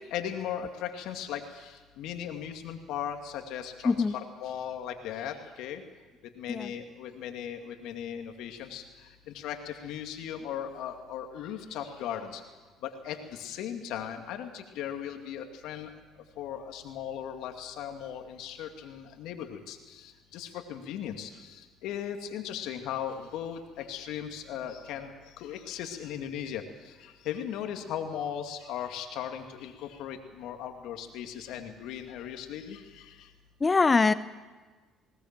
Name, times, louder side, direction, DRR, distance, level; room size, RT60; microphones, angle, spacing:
voice 1, 0.1-5.8 6.4-8.8 9.3-12.4 12.8-15.9 16.4-33.3, left 9 dB, 75° left, 5 dB, 2.3 m, -38 dB
voice 2, 33.6-34.1, left 4 dB, 30° left, 14 dB, 0.7 m, -23 dB
19.5 x 19.0 x 7.5 m, 1.3 s
supercardioid pair, 70°, 0 cm